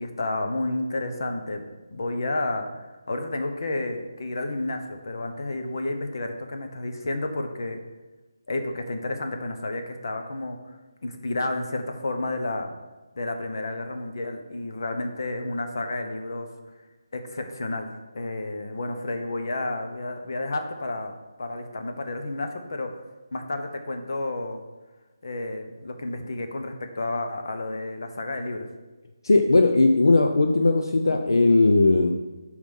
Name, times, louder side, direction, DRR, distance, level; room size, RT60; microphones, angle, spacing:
voice 1, 0.0-1.6 1.9-7.8 8.5-10.6 11.0-12.7 13.1-16.5 17.1-17.9 18.1-21.1 21.4-22.9 23.3-24.6 25.2-28.7, left 2 dB, 60° left, 5 dB, 1.0 m, -31 dB
voice 2, 29.2-32.1, left 2 dB, 85° left, 5 dB, 0.6 m, -18 dB
5.3 x 4.8 x 5.4 m, 1.2 s
figure-of-eight pair, 165°, 2 cm